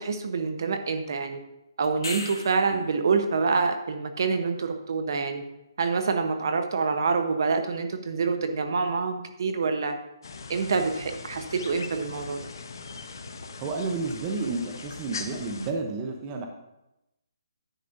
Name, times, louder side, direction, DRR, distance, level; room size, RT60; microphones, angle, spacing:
voice 1, 0.0-1.4 1.8-5.4 5.8-9.9 10.5-12.4, right 4 dB, 55° right, 7 dB, 0.9 m, -26 dB
sound 1, 1.8-2.8 7.5-7.6, left 3 dB, 75° left, 1.7 m, -36 dB
sound 2, 10.2-15.7, left 4 dB, 60° left, 0.8 m, -40 dB
voice 2, 13.6-16.5, right 3 dB, 20° right, 3 dB, 0.7 m, -31 dB
10.0 x 8.3 x 2.6 m, 0.90 s
hypercardioid pair, 165°, 2 cm